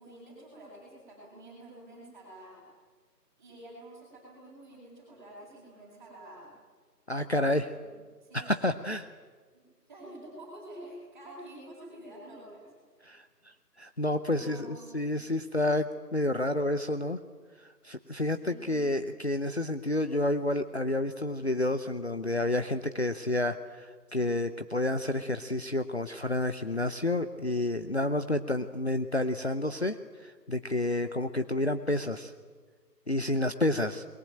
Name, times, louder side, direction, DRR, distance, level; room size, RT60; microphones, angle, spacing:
voice 1, 0.0-2.7 3.4-6.5 7.6-8.0 8.2-8.5 9.5-12.7 14.3-15.2 18.1-19.1, right 1 dB, 10° right, -7 dB, 7.9 m, -49 dB
voice 2, 7.1-7.7 8.3-9.1 13.0-15.9 16.1-17.2 17.6-32.3 33.1-34.0, left 1 dB, 40° left, 9 dB, 0.9 m, -30 dB
27.5 x 22.0 x 8.9 m, 1.5 s
figure-of-eight pair, 170°, 49 cm